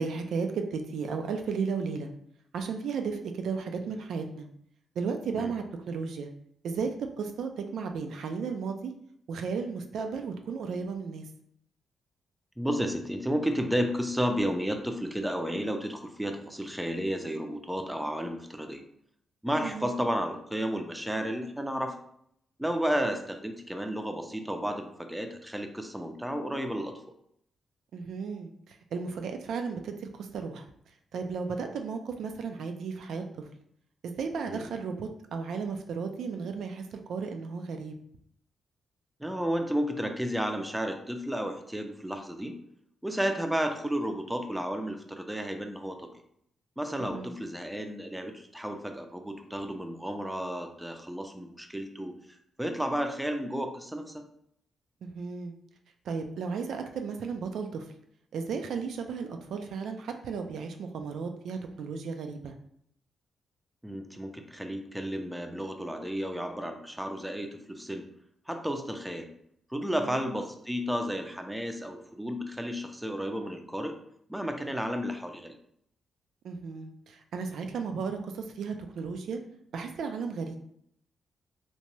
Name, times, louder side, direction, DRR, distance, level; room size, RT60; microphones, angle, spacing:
voice 1, 0.0-2.1 2.5-4.5 5.0-6.3 6.6-8.9 9.3-11.2 19.6-20.0 27.9-30.7 31.1-33.5 34.0-37.9 47.1-47.4 55.0-55.5 56.0-57.9 58.3-62.5 70.0-70.3 76.4-79.4 79.7-80.6, right 5 dB, 80° right, 5 dB, 0.3 m, -34 dB
voice 2, 12.6-18.8 19.4-22.0 22.6-27.0 34.5-34.7 39.2-42.5 43.0-46.1 46.8-54.2 63.8-68.0 68.5-69.3 69.7-74.0 74.3-75.6, equal, 5° right, 5 dB, 0.4 m, -32 dB
2.8 x 2.1 x 3.0 m, 0.70 s
cardioid pair, 80°, 0 cm